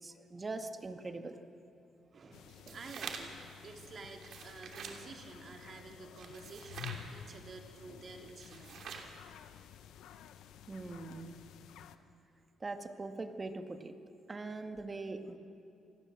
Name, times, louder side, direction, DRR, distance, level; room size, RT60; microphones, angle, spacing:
voice 1, 0.0-1.4 10.0-10.1 10.7-11.4 12.6-13.9 14.3-15.4, right 3 dB, 30° right, 7 dB, 1.9 m, -42 dB
voice 2, 2.1-8.8, right 3 dB, 45° right, 3 dB, 3.4 m, -50 dB
sound 1, 2.3-12.0, left 9 dB, 85° left, 1.0 m, -52 dB
sound 2, 2.5-3.4 4.1-5.0 6.2-7.0 8.3-9.1, right 6 dB, 65° right, 2.9 m, -46 dB
28.5 x 19.5 x 7.6 m, 2.8 s
cardioid pair, 90°, 0 cm